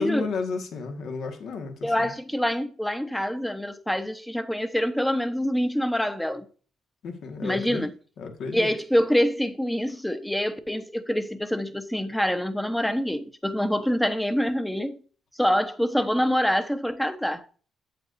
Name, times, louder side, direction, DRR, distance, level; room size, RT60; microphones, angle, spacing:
voice 1, 0.0-1.9 7.0-7.9 8.2-8.7, left 4 dB, 70° left, 1.8 m, -32 dB
voice 2, 1.8-6.5 7.4-7.9 8.5-15.0 15.3-17.4, equal, 5° left, 1.0 m, -26 dB
8.7 x 7.9 x 2.7 m
cardioid pair, 75°, 0 cm